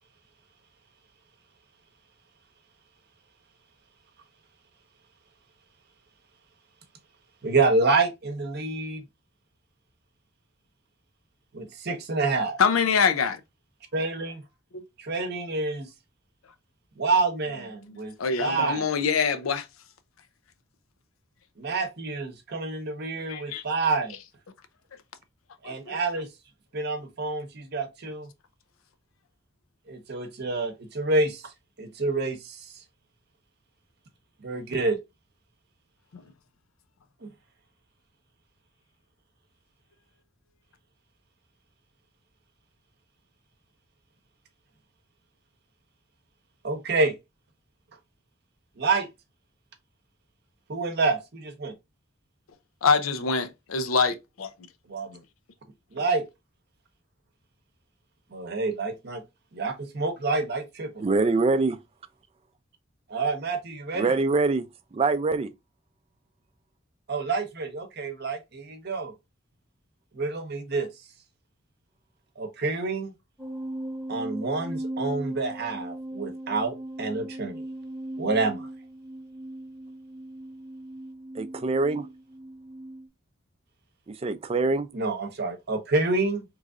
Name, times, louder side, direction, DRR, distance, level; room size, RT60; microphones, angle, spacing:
voice 1, 7.4-9.0 11.5-12.6 13.9-14.4 15.0-15.9 17.0-18.1 18.4-18.9 21.6-24.2 25.6-26.3 26.7-28.3 29.9-31.4 31.8-32.6 34.4-35.0 37.2-37.3 46.6-47.1 48.8-49.1 50.7-51.7 54.9-55.2 55.9-56.2 58.3-59.2 59.5-60.9 63.1-64.1 67.1-69.1 70.1-70.9 72.4-73.1 74.1-77.6 78.2-78.7 84.9-86.4, right 3 dB, 50° right, 0.8 m, -28 dB
voice 2, 12.6-13.4 14.7-14.8 17.9-19.7 23.3-23.6 25.6-26.0 36.1-36.2 52.8-54.5, left 5 dB, 85° left, 0.5 m, -25 dB
voice 3, 61.0-61.8 63.9-65.5 81.3-82.1 84.1-84.9, right 3 dB, 30° right, 0.3 m, -24 dB
sound 1, 73.4-83.1, right 1 dB, ahead, 0.9 m, -38 dB
3.1 x 2.5 x 3.5 m
head